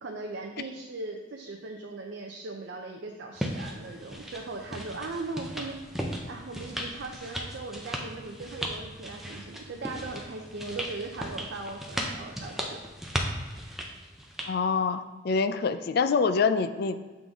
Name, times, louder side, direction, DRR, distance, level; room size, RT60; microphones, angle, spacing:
voice 1, 0.0-12.8, right 3 dB, 65° right, 1 dB, 0.5 m, -39 dB
sound 1, 3.4-14.5, equal, ahead, 0.5 m, -36 dB
voice 2, 14.5-17.0, left 5 dB, 55° left, 11 dB, 0.3 m, -25 dB
7.5 x 3.8 x 3.5 m, 1.3 s
head